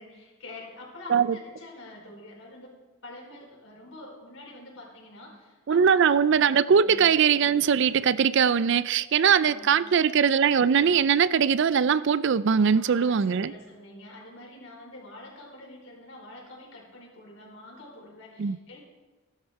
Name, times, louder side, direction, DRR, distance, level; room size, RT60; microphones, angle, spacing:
voice 1, 0.0-2.7 3.0-6.1 6.7-6.9 9.4-10.0 12.7-18.8, left 2 dB, 70° left, 4.8 m, -46 dB
voice 2, 5.7-13.5 18.4-18.6, right 7 dB, 60° right, 0.4 m, -21 dB
16.0 x 12.0 x 4.6 m
head